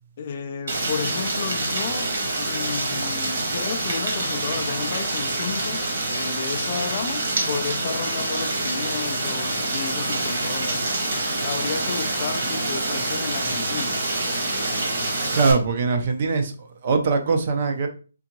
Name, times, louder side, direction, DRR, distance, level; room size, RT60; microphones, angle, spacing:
voice 1, 0.2-10.9 11.4-14.0, left 6 dB, 30° left, 0.3 m, -32 dB
Rain, 0.7-15.5, right 2 dB, 50° right, 1.3 m, -26 dB
voice 2, 15.3-16.5 16.8-17.9, right 4 dB, 30° right, 0.5 m, -21 dB
3.7 x 3.4 x 2.9 m
hypercardioid pair, 175°, 0 cm